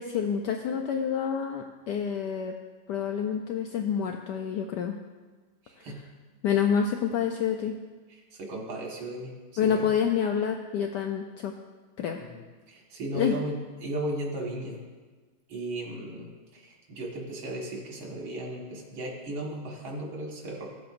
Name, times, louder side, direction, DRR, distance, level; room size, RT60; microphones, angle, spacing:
voice 1, 0.0-2.5 2.9-4.9 6.4-7.8 9.6-11.5 12.0-12.2 13.1-13.4, left 7 dB, 75° left, 4 dB, 1.0 m, -28 dB
voice 2, 5.6-6.0 8.1-9.9 12.2-12.4 12.7-14.8 15.5-20.7, right 1 dB, 80° right, -2 dB, 2.4 m, -36 dB
16.0 x 7.7 x 2.5 m, 1.4 s
omnidirectional pair, 2.2 m